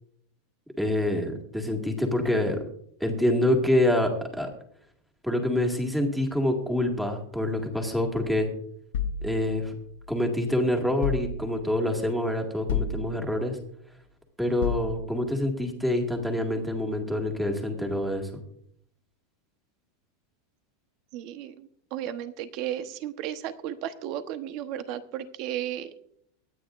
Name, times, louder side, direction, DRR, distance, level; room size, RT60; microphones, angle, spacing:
voice 1, 0.8-2.6 3.0-4.5 5.2-8.5 9.2-9.7 10.1-13.6 14.4-18.4, left 1 dB, ahead, 3 dB, 1.9 m, -26 dB
sound 1, 8.9-10.3 11.0-11.9 12.7-13.6 14.6-15.4, left 5 dB, 80° left, 1.1 m, -32 dB
voice 2, 21.1-25.9, right 11 dB, 45° right, 10 dB, 1.0 m, -34 dB
23.5 x 9.3 x 2.5 m, 0.68 s
supercardioid pair, 155°, 0 cm